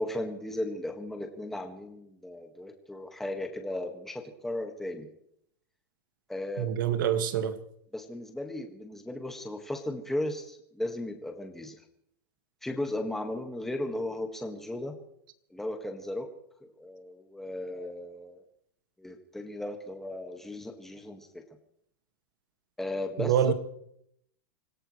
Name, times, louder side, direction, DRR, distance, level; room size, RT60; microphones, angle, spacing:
voice 1, 0.0-5.1 6.3-6.7 7.9-11.8 12.6-14.9 15.5-16.3 16.6-18.4 19.0-21.4 22.8-23.5, left 1 dB, 5° left, 1.8 m, -36 dB
voice 2, 6.6-7.6 23.2-23.5, right 9 dB, 70° right, 2.0 m, -26 dB
26.0 x 16.5 x 3.3 m
supercardioid pair, 150°, 11 cm